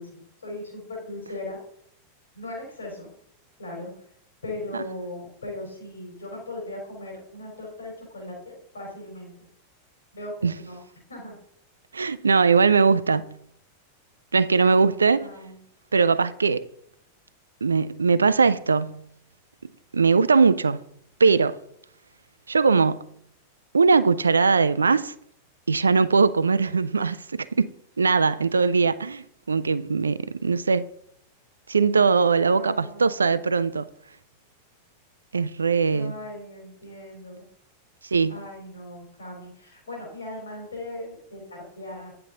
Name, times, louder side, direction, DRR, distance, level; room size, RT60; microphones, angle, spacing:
voice 1, 0.0-1.6 2.4-3.1 3.6-4.0 4.4-9.5 10.1-10.8 11.1-11.4 15.2-15.6 32.5-33.2 35.9-37.5 38.3-42.1, left 1 dB, 75° left, 3.5 m, -38 dB
voice 2, 11.9-13.4 14.3-15.3 15.9-16.6 17.6-19.0 19.9-20.8 21.2-21.6 22.5-23.1 23.7-25.1 25.7-27.7 28.0-30.8 31.7-33.9 35.3-36.1 38.1-38.3, right 4 dB, 75° right, 0.3 m, -20 dB
9.8 x 6.8 x 3.8 m
figure-of-eight pair, 90°, 0 cm